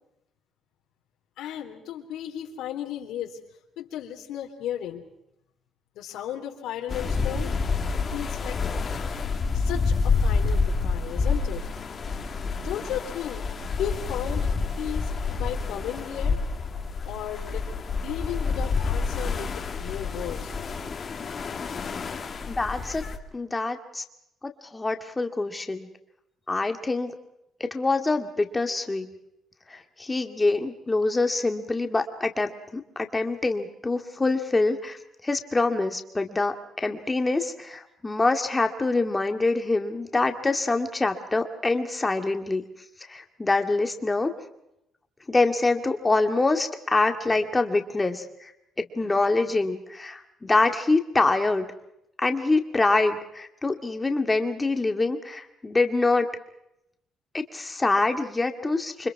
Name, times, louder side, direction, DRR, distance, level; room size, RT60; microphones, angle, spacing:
voice 1, 1.4-3.4 3.8-5.0 5.9-7.6 8.1-8.6 9.5-11.6 12.6-13.4 13.8-14.5 14.8-16.4 17.0-17.7 18.0-20.5, left 10 dB, 85° left, 2 dB, 3.4 m, -34 dB
sound 1, 6.9-23.2, left 4 dB, 30° left, 2.1 m, -28 dB
voice 2, 22.5-23.0 23.3-24.0 24.4-25.9 26.5-27.1 27.6-29.1 29.7-35.0 35.2-42.6 43.1-44.3 45.3-48.5 49.0-51.7 52.2-56.3 57.3-59.1, left 3 dB, 15° left, 5 dB, 2.1 m, -25 dB
29.0 x 25.0 x 4.8 m, 0.83 s
cardioid pair, 165°, 0 cm